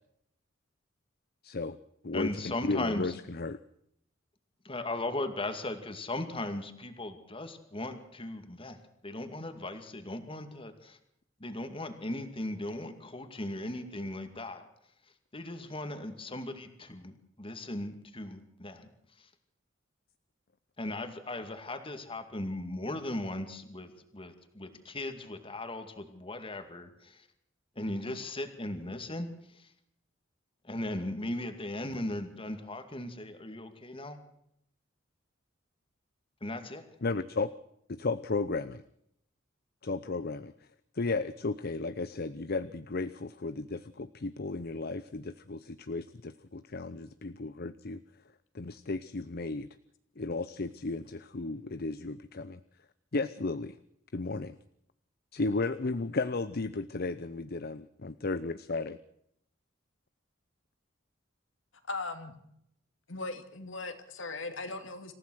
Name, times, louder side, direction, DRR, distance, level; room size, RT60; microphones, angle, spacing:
voice 1, 1.4-1.8 2.0-3.6 37.0-37.5 37.9-38.8 39.8-40.5 41.0-48.0 48.5-49.7 50.2-52.6 53.1-53.8 54.1-54.5 55.3-59.0, left 3 dB, 50° left, 13 dB, 0.8 m, -34 dB
voice 2, 2.1-3.1 4.6-8.8 9.0-11.0 11.4-14.7 15.3-18.9 19.2-19.3 20.8-27.3 27.8-29.7 30.6-34.2 36.4-36.9, left 1 dB, 30° left, 8 dB, 2.3 m, -38 dB
voice 3, 61.9-62.4 63.1-65.1, left 3 dB, 75° left, 7 dB, 2.8 m, -38 dB
27.0 x 15.5 x 6.4 m, 0.74 s
head